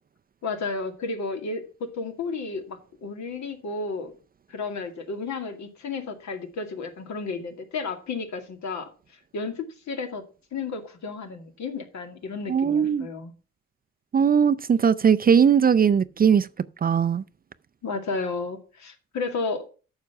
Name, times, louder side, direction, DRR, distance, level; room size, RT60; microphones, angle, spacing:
voice 1, 0.4-4.1 4.5-8.9 9.3-10.2 10.5-13.3 17.8-19.6, left 4 dB, 65° left, 2.3 m, -32 dB
voice 2, 12.5-13.1 14.1-16.5 16.8-17.2, right 7 dB, 30° right, 0.5 m, -19 dB
9.5 x 6.6 x 5.8 m
cardioid pair, 90°, 30 cm